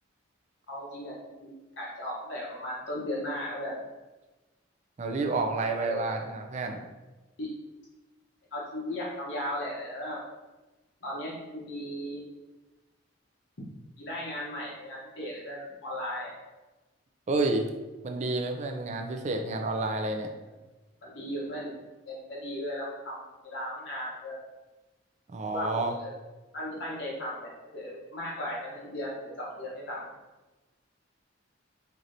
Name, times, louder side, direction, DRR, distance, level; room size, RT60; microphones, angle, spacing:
voice 1, 0.7-3.8 5.8-6.2 7.4-7.5 8.5-10.2 11.0-12.2 14.0-16.3 21.0-21.8 22.1-24.4 25.5-26.1 26.5-30.1, left 1 dB, 65° left, -5 dB, 0.8 m, -36 dB
voice 2, 5.0-6.8 17.3-17.7 18.0-20.3 25.3-25.9, right 2 dB, 35° right, 4 dB, 0.3 m, -29 dB
4.6 x 2.7 x 2.5 m, 1.1 s
head